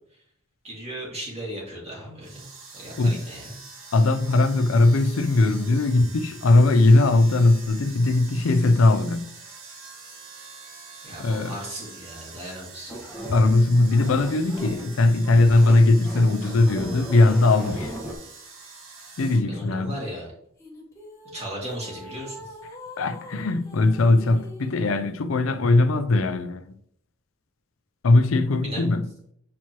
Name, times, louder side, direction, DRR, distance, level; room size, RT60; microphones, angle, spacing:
voice 1, 0.6-2.5 2.7-3.6 11.0-13.0 19.5-20.3 21.3-22.6 28.6-28.8, right 1 dB, 30° right, 2.3 m, -36 dB
sound 1, 2.2-19.4, right 4 dB, 90° right, 1.7 m, -45 dB
voice 2, 3.9-9.3 11.2-11.5 13.3-17.9 19.2-20.0 23.0-26.6 28.0-29.1, left 2 dB, 85° left, 0.5 m, -19 dB
sound 2, 12.9-15.0 15.2-18.1, right 1 dB, 5° right, 1.3 m, -36 dB
sound 3, 20.6-25.1, left 1 dB, 15° left, 1.2 m, -44 dB
7.1 x 4.6 x 3.0 m
head